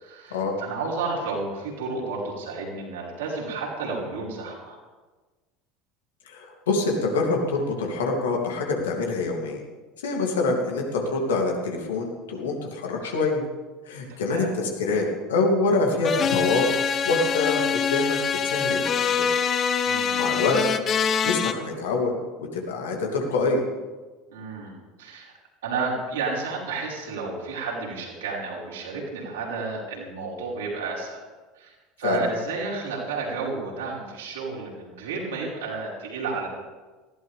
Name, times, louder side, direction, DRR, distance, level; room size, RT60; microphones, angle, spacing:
voice 1, 0.0-4.8 14.1-14.5 19.8-20.4 24.3-25.3 25.6-31.2 31.6-36.5, right 4 dB, 70° right, -4 dB, 5.2 m, -32 dB
voice 2, 6.3-9.6 10.0-13.4 13.8-16.7 17.0-18.2 18.4-19.3 20.1-20.6 21.2-22.1 22.4-23.6 32.0-32.2, left 3 dB, 70° left, 0 dB, 3.0 m, -25 dB
sound 1, 16.0-21.5, left 6 dB, 35° left, 1.1 m, -24 dB
20.0 x 16.0 x 3.6 m, 1.3 s
figure-of-eight pair, 70°, 0 cm